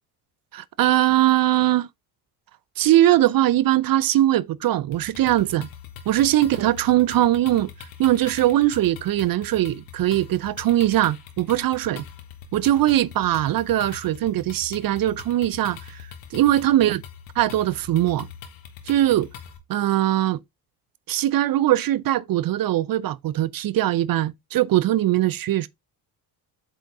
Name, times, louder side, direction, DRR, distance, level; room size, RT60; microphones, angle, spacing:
voice 1, 0.5-1.9 2.8-5.7 6.1-7.7 8.0-12.0 12.5-17.0 17.4-18.3 18.9-19.3 19.7-20.4 21.1-25.7, right 14 dB, 50° right, 0.5 m, -21 dB
sound 1, 4.9-19.6, left 8 dB, 80° left, 1.4 m, -42 dB
7.9 x 3.9 x 3.5 m
supercardioid pair, 65°, 45 cm